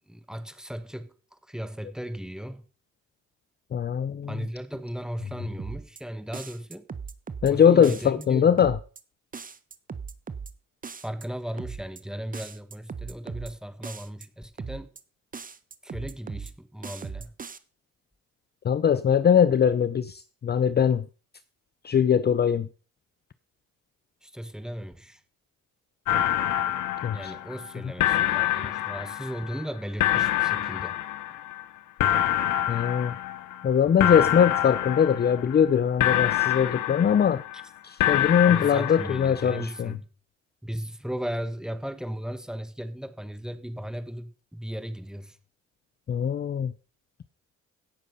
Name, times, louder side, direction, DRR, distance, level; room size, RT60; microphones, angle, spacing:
voice 1, 0.1-2.6 4.3-6.8 7.5-8.5 11.0-14.9 15.8-17.3 24.2-25.2 27.1-31.0 38.4-40.1 40.6-45.4, equal, ahead, 1.6 m, -36 dB
voice 2, 3.7-4.5 7.4-8.8 18.6-21.0 21.8-22.7 27.0-27.3 32.7-33.1 33.6-37.4 37.8-39.9 46.1-46.7, left 8 dB, 35° left, 0.5 m, -21 dB
sound 1, 5.6-6.0 6.3-7.5 7.8-8.3 8.6-9.0 9.3-10.5 10.8-11.3 11.6-12.0 12.3-13.5 13.8-14.3 14.6-15.0 15.3-16.5 16.8-17.6, right 5 dB, 30° right, 1.0 m, -38 dB
sound 2, 26.1-27.7 28.0-29.6 30.0-31.6 32.0-33.7 34.0-35.7 36.0-37.6 38.0-39.6, left 12 dB, 85° left, 1.2 m, -26 dB
16.5 x 6.4 x 5.4 m
cardioid pair, 90°, 30 cm